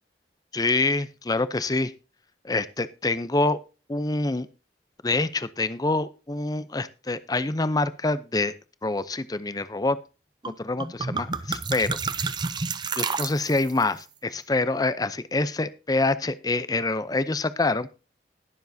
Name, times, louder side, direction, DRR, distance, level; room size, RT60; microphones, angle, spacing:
voice 1, 0.5-1.9 2.4-3.6 3.9-4.5 5.0-8.5 8.8-10.0 10.5-12.0 13.0-17.9, left 2 dB, 20° left, 14 dB, 0.6 m, -26 dB
sound 1, 10.4-10.6 10.8-13.8, right 4 dB, 25° right, 0.5 m, -30 dB
21.0 x 7.1 x 2.7 m, 0.31 s
head